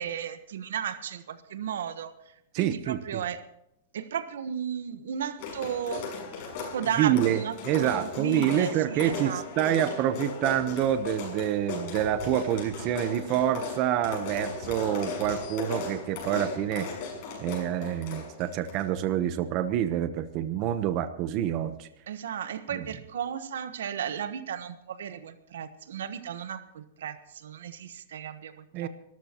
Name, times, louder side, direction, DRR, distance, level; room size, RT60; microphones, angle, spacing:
voice 1, 0.0-2.1 2.6-3.4 3.9-6.0 6.7-9.8 22.1-28.9, right 8 dB, 80° right, 11 dB, 1.2 m, -34 dB
voice 2, 2.5-3.2 7.0-7.4 7.7-16.9 17.4-21.9 22.7-22.8 28.7-28.9, right 11 dB, 35° right, 10 dB, 0.9 m, -27 dB
sound 1, 5.4-18.8, left 4 dB, 45° left, 6.5 m, -37 dB
25.5 x 13.5 x 3.0 m, 0.80 s
supercardioid pair, 150°, 0 cm